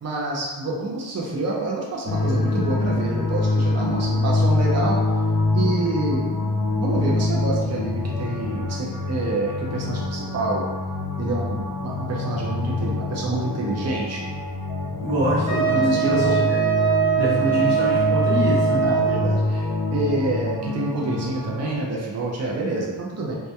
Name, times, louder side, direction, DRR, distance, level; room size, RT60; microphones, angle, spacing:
voice 1, 0.0-5.0 5.5-6.3 6.8-10.7 11.2-14.3 15.8-16.4 18.8-23.4, right 2 dB, 40° right, -3 dB, 0.5 m, -27 dB
sound 1, 2.1-21.8, left 2 dB, 55° left, 0.5 m, -25 dB
voice 2, 15.0-16.6 17.1-18.8, right 1 dB, 85° right, -9 dB, 1.0 m, -24 dB
Wind instrument woodwind instrument, 15.5-19.3, right 8 dB, 10° left, 0.6 m, -22 dB
2.2 x 2.1 x 2.8 m, 1.3 s
wide cardioid pair, 50°, 41 cm